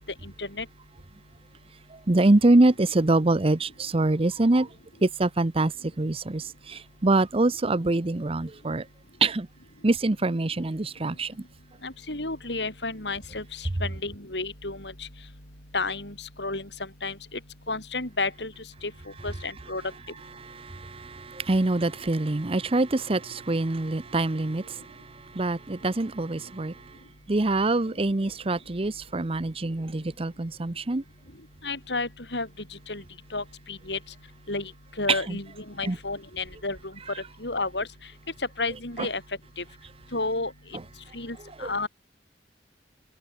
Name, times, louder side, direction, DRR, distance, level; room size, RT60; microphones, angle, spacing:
voice 1, 0.2-0.7 11.8-15.1 15.7-16.7 17.0-17.1 17.7-18.5 18.8-18.9 19.2-19.8 31.6-32.5 32.9-33.0 33.3-34.0 34.5-34.7 35.0-36.9 37.4-37.9 38.6-39.2 39.6-39.7 40.1-40.5 41.1-41.9, left 3 dB, 75° left, 7.7 m, -31 dB
voice 2, 1.9-4.7 5.0-5.7 6.0-8.8 9.2-9.5 9.8-11.4 20.4-26.8 27.3-31.0 35.1-35.4 35.8-36.0 39.0-39.1 41.6-41.7, right 2 dB, 35° right, 0.8 m, -25 dB
open air
head